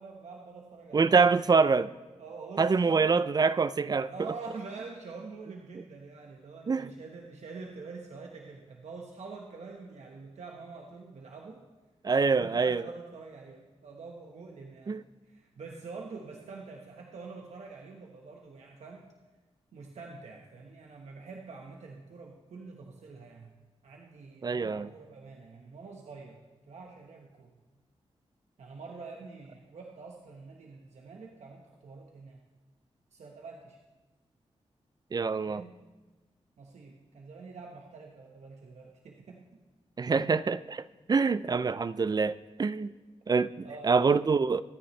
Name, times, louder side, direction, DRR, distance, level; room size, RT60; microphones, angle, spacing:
voice 1, 0.0-1.3 2.2-3.3 4.0-11.7 12.3-14.9 15.2-19.1 19.7-23.5 23.8-26.4 26.7-27.5 28.6-32.4 33.1-33.8 35.4-35.9 36.6-39.5 43.6-43.9, right 4 dB, 85° right, 0 dB, 1.3 m, -46 dB
voice 2, 0.9-1.9 2.6-4.1 6.7-6.9 12.0-12.8 14.9-15.0 24.4-24.9 35.1-35.6 40.0-42.9 43.3-44.6, right 4 dB, 35° right, 16 dB, 0.4 m, -25 dB
24.5 x 9.8 x 3.2 m, 1.2 s
wide cardioid pair, 100°, 11 cm